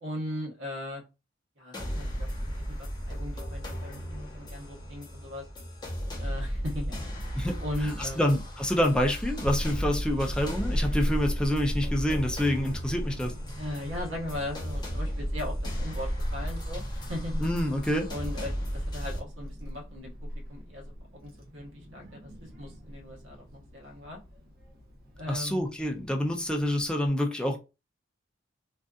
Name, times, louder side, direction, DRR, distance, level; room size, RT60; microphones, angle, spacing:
voice 1, 0.0-1.0 1.6-5.5 6.2-7.0 7.6-8.3 13.6-17.4 18.1-24.2 25.2-25.6, left 1 dB, 70° right, 1.0 m, -38 dB
sound 1, 1.7-19.2, equal, 20° left, 0.8 m, -35 dB
voice 2, 7.8-13.3 17.4-18.1 25.3-27.6, equal, 5° left, 0.4 m, -27 dB
Child speech kid speaking / Wind, 8.7-27.1, equal, 50° right, 0.7 m, -37 dB
2.6 x 2.4 x 2.3 m
head